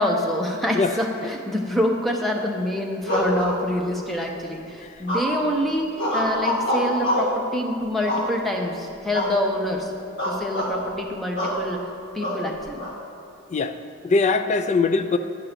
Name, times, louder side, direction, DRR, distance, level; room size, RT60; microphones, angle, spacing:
voice 1, 0.0-5.9 6.1-9.9 10.2-11.8 12.1-12.9, left 1 dB, ahead, 0 dB, 0.7 m, -26 dB
sound 1, 3.0-4.1 5.1-5.5 6.0-7.4 8.1-8.6 9.1-9.4 9.7-9.8 10.2-10.7 11.4-11.6 12.2-12.9, equal, 60° left, 1.6 m, -25 dB
voice 2, 14.0-15.2, left 4 dB, 35° left, 9 dB, 0.4 m, -21 dB
9.7 x 3.7 x 6.6 m, 2.7 s
head